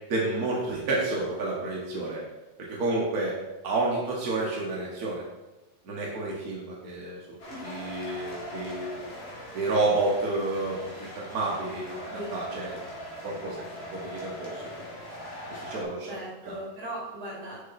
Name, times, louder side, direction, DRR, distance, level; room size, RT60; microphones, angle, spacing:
voice 1, 0.1-2.2 2.7-3.3 3.6-5.2 5.8-9.1 9.5-12.8 13.2-13.6 13.9-14.7 15.5-16.1 16.4-16.6, right 2 dB, 60° right, -4 dB, 0.9 m, -30 dB
sound 1, 7.4-15.8, left 1 dB, 50° left, 2.4 m, -41 dB
voice 2, 16.1-17.7, right 1 dB, 30° right, -6 dB, 3.1 m, -38 dB
6.7 x 5.3 x 4.1 m, 1.0 s
omnidirectional pair, 3.5 m